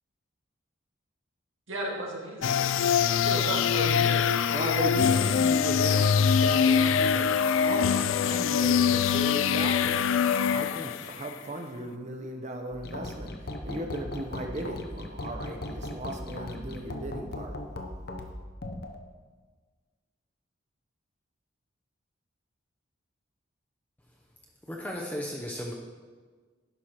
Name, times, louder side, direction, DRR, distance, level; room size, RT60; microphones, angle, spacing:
voice 1, 1.7-2.6 3.2-4.6, right 1 dB, 85° right, -3 dB, 2.2 m, -34 dB
sound 1, 2.4-11.3, left 7 dB, 85° left, 0.4 m, -24 dB
voice 2, 4.5-17.6, right 1 dB, 35° right, 3 dB, 0.9 m, -37 dB
sound 2, 12.7-18.9, left 1 dB, 50° left, 0.8 m, -38 dB
voice 3, 24.7-25.7, equal, 10° left, -1 dB, 0.7 m, -35 dB
11.0 x 4.7 x 5.8 m, 1.4 s
head